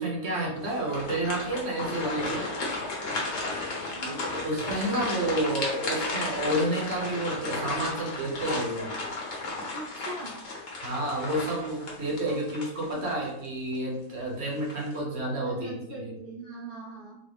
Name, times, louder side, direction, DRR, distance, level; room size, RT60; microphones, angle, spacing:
voice 1, 0.0-2.5 4.1-8.9 10.8-16.2, right 1 dB, 45° right, -2 dB, 1.1 m, -30 dB
sound 1, 0.6-13.3 13.7-13.9 14.5-15.0, left 2 dB, 55° left, 1.2 m, -34 dB
voice 2, 4.0-4.3 9.7-10.4 12.1-12.5 12.9-13.3 15.4-17.2, right 2 dB, 75° right, -5 dB, 0.5 m, -41 dB
3.8 x 2.1 x 3.3 m, 0.84 s
omnidirectional pair, 1.8 m